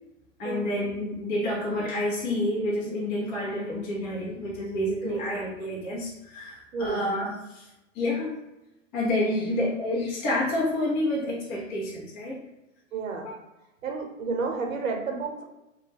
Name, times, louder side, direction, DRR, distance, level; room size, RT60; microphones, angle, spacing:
voice 1, 0.4-7.7 7.9-8.4 8.9-12.4 13.2-13.3, left 1 dB, 30° left, -6 dB, 0.7 m, -29 dB
voice 2, 5.0-5.4 6.7-7.0 12.9-13.3 13.8-15.4, right 4 dB, 90° right, 2 dB, 0.8 m, -31 dB
2.3 x 2.1 x 3.2 m, 0.97 s
hypercardioid pair, 150°, 39 cm